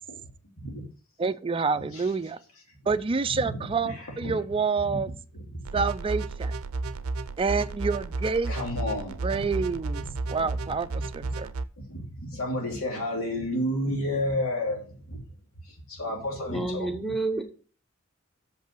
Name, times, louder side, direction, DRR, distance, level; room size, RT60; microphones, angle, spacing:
voice 1, 1.2-2.4 2.9-5.1 5.7-6.5 7.4-8.5 9.2-10.0 10.3-11.5, right 4 dB, 25° right, 0.4 m, -28 dB
voice 2, 1.7-2.1 3.4-4.3 4.8-5.0 5.3-5.6 8.5-9.5 10.0-10.1 11.9-15.2 15.6-16.9, left 1 dB, 90° left, 2.7 m, -31 dB
sound 1, 5.6-11.6, right 3 dB, 90° right, 0.5 m, -33 dB
voice 3, 16.5-17.4, right 2 dB, ahead, 0.9 m, -29 dB
6.7 x 5.6 x 6.2 m
head